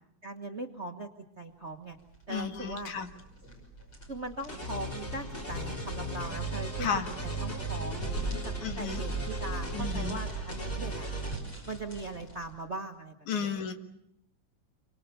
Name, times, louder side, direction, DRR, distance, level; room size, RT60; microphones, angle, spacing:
voice 1, 0.2-1.1 1.4-2.0 2.3-2.9 4.1-8.3 8.8-11.1 11.7-13.5, right 2 dB, 35° right, 4 dB, 1.1 m, -40 dB
sound 1, 1.9-12.6, right 2 dB, 40° left, 6.8 m, -42 dB
voice 2, 2.3-3.1 6.8-7.1 8.6-9.0 9.7-10.2 13.3-13.7, left 6 dB, 90° left, 6 dB, 3.3 m, -33 dB
sound 2, 4.5-11.4, right 2 dB, 20° left, 4.6 m, -36 dB
28.5 x 24.5 x 6.9 m, 0.77 s
omnidirectional pair, 3.3 m